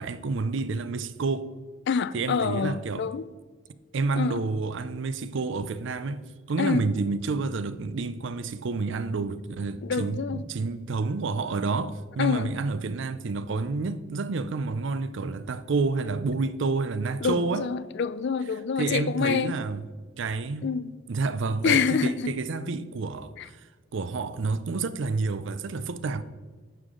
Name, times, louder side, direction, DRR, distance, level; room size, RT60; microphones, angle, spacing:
voice 1, 0.0-1.5 2.1-3.1 3.9-6.2 6.5-17.6 18.8-19.8 20.2-20.7 21.1-23.6 23.9-26.2, right 3 dB, 60° right, 0.5 m, -29 dB
voice 2, 1.9-3.3 4.2-4.4 6.6-6.9 9.8-10.4 12.2-12.5 17.2-19.5 20.6-20.9 21.6-22.3, left 6 dB, 55° left, 0.4 m, -27 dB
11.0 x 6.7 x 3.7 m
head